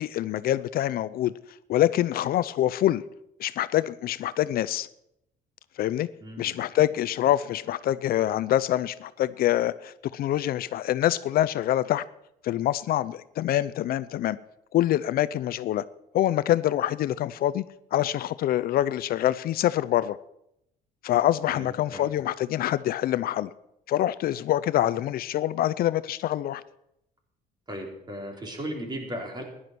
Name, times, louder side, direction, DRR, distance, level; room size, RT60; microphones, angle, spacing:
voice 1, 0.0-1.3 1.7-3.0 3.4-4.9 5.8-6.1 6.4-12.0 12.4-14.4 14.7-15.8 16.1-17.6 17.9-20.2 21.0-23.5 23.9-26.6, left 13 dB, 60° left, 0.5 m, -25 dB
voice 2, 6.2-6.6 21.5-22.1 27.7-29.4, equal, 25° right, 4.3 m, -36 dB
15.0 x 11.0 x 6.0 m
cardioid pair, 110°, 17 cm